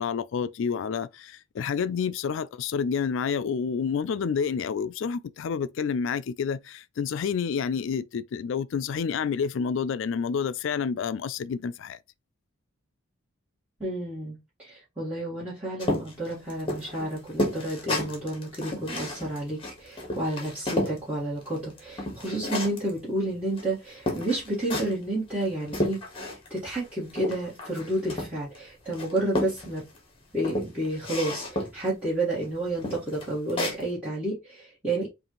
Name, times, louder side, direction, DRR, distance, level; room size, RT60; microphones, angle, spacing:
voice 1, 0.0-12.0, left 6 dB, 65° left, 0.3 m, -29 dB
voice 2, 13.8-26.0 26.5-29.8 30.3-35.1, right 1 dB, 5° right, 1.6 m, -30 dB
sound 1, 15.8-21.0 21.4-22.9 23.6-23.7 24.1-25.0 25.4-26.6 26.8-28.6 28.9-30.0 30.4-31.9 32.3-32.5 32.8-33.8, left 1 dB, 25° left, 1.3 m, -31 dB
5.4 x 2.5 x 3.0 m
head